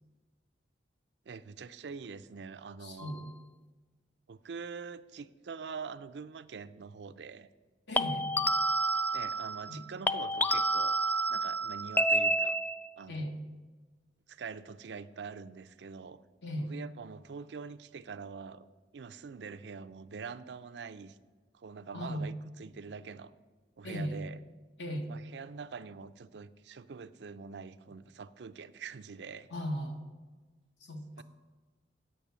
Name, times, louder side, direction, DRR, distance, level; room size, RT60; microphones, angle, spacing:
voice 1, 1.3-3.1 4.3-7.5 9.1-11.0 11.3-12.6 13.0-13.2 14.3-16.2 16.6-18.6 18.9-21.2 21.5-23.3 23.8-24.4 25.1-29.5 31.2-31.3, right 5 dB, 70° right, 13 dB, 0.5 m, -44 dB
voice 2, 2.8-3.3 7.9-8.3 9.6-9.8 13.1-13.3 16.4-16.7 21.9-22.3 23.8-24.2 24.8-25.1 29.5-30.0 30.8-31.2, equal, 80° left, 4 dB, 1.4 m, -37 dB
sound 1, 3.0-3.3 8.0-9.8 10.1-12.9, right 1 dB, 10° left, 0.3 m, -29 dB
8.7 x 5.7 x 8.1 m, 1.3 s
head